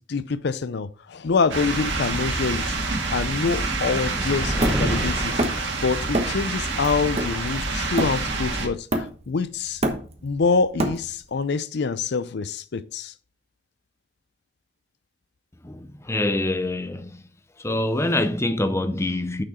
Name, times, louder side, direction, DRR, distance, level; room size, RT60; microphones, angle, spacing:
voice 1, 0.0-2.8 3.1-5.3 5.8-9.8 10.2-13.1, left 4 dB, 60° left, 0.5 m, -25 dB
sound 1, 1.5-8.7, right 3 dB, 70° right, 1.9 m, -27 dB
sound 2, 2.0-5.5, equal, 5° right, 0.9 m, -31 dB
Hammer, 4.6-5.7 6.1-6.5 6.8-8.4 8.9-9.4 9.6-11.3, right 1 dB, 35° right, 1.1 m, -27 dB
voice 2, 15.6-17.2 17.6-19.4, left 1 dB, 15° left, 0.6 m, -25 dB
6.5 x 6.0 x 4.2 m
head